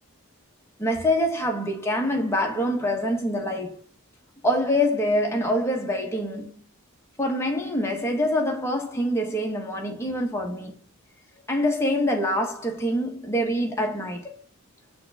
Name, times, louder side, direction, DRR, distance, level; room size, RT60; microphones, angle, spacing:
voice 1, 0.8-3.8 4.4-6.6 7.2-10.8 11.5-14.4, equal, 10° left, 1.1 m, -25 dB
7.1 x 3.8 x 3.5 m
head